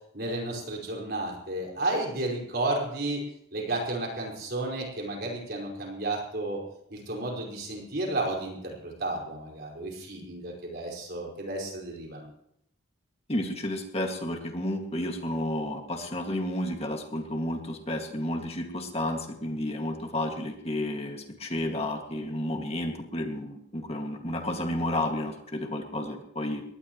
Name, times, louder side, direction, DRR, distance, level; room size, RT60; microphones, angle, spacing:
voice 1, 0.1-3.2 3.5-6.6 6.9-12.3, right 2 dB, 50° right, -1 dB, 5.1 m, -32 dB
voice 2, 13.3-26.6, left 1 dB, 30° left, 3 dB, 2.1 m, -31 dB
22.0 x 18.5 x 3.1 m, 0.74 s
head